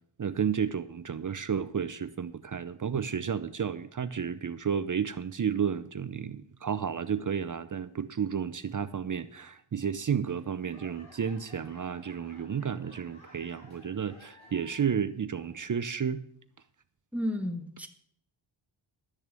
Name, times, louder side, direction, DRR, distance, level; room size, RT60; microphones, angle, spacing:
voice 1, 0.2-16.2, right 7 dB, 40° right, 13 dB, 0.7 m, -32 dB
Laughter / Clapping / Crowd, 10.2-15.0 15.3-15.9 16.4-16.5, left 2 dB, 80° left, 5.8 m, -56 dB
voice 2, 17.1-17.9, left 1 dB, 5° right, 6 dB, 1.6 m, -32 dB
12.0 x 6.6 x 8.9 m, 0.66 s
wide cardioid pair, 95°, 49 cm